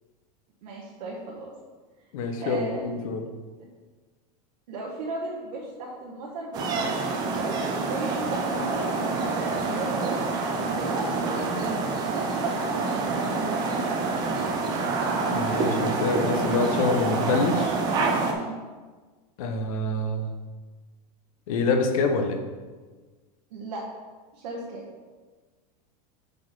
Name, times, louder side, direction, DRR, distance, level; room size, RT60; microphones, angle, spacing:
voice 1, 0.6-1.5 2.4-2.9 4.7-7.6 7.9-13.6 18.3-18.6 23.5-23.8 24.3-24.8, right 2 dB, 90° right, -4 dB, 1.3 m, -36 dB
voice 2, 2.1-3.2 15.3-17.8 19.4-20.3 21.5-22.4, left 3 dB, 60° left, 5 dB, 0.9 m, -26 dB
sound 1, 6.5-18.3, right 3 dB, 20° right, 0.5 m, -27 dB
5.0 x 4.4 x 5.9 m, 1.4 s
supercardioid pair, 180°, 21 cm